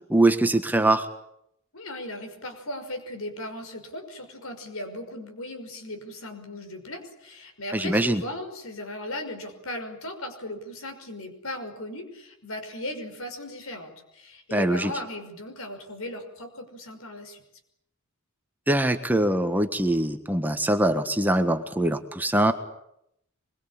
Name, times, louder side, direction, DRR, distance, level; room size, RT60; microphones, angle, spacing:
voice 1, 0.1-1.0 7.7-8.2 14.5-14.9 18.7-22.5, right 1 dB, 10° right, 7 dB, 1.5 m, -23 dB
voice 2, 1.7-17.4, left 1 dB, 75° left, 7 dB, 5.7 m, -37 dB
24.5 x 23.0 x 8.8 m, 0.78 s
head